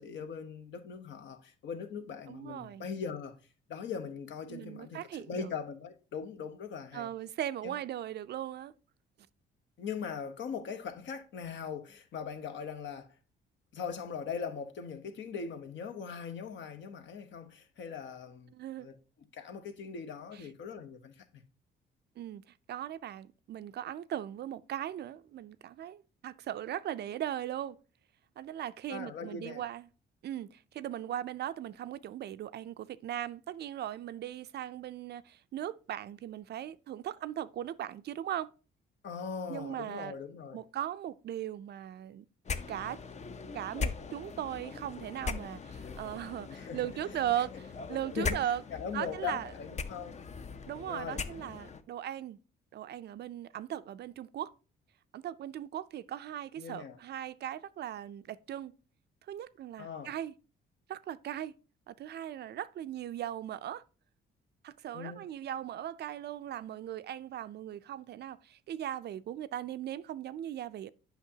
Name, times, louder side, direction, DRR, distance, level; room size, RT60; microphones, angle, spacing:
voice 1, 0.0-3.4 3.7-7.1 7.6-7.7 9.8-13.1 13.7-18.5 18.8-19.0 19.3-21.4 28.9-29.6 39.0-40.6 46.4-46.9 48.2-50.2 50.9-51.2 56.6-57.0 59.8-60.1 64.9-65.2, left 6 dB, 65° left, 0.9 m, -40 dB
voice 2, 2.3-2.9 4.5-5.5 6.9-8.7 18.5-18.9 22.2-22.4 22.7-27.8 28.4-29.8 30.2-38.5 39.5-40.1 40.5-42.3 42.7-43.0 43.5-48.6 48.9-49.5 50.7-52.4 52.7-54.5 55.1-58.7 59.3-60.3 60.9-61.5 61.9-63.8 64.6-70.9, right 11 dB, 55° right, 0.4 m, -38 dB
sound 1, 42.4-51.8, left 5 dB, 35° left, 0.5 m, -40 dB
8.1 x 5.7 x 2.7 m
cardioid pair, 90°, 20 cm